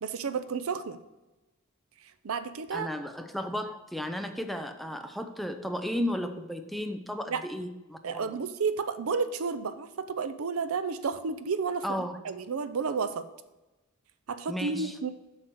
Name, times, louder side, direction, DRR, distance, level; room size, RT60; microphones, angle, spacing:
voice 1, 0.0-1.0 2.2-2.9 7.3-7.5 8.0-13.3 14.3-15.1, right 5 dB, 75° right, 12 dB, 0.6 m, -31 dB
voice 2, 2.7-8.3 11.8-12.2 14.5-15.0, equal, ahead, 7 dB, 0.5 m, -34 dB
7.5 x 6.6 x 4.6 m, 1.1 s
head